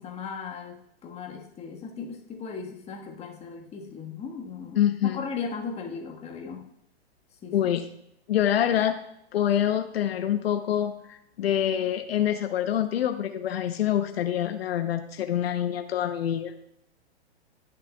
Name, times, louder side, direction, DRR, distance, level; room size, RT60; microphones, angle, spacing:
voice 1, 0.0-6.6 7.4-7.6, left 5 dB, 20° left, 1 dB, 1.4 m, -37 dB
voice 2, 4.8-5.2 7.5-7.8 8.3-8.9 9.3-16.6, left 10 dB, 65° left, 8 dB, 0.8 m, -26 dB
19.5 x 6.5 x 2.3 m, 0.77 s
hypercardioid pair, 125°, 32 cm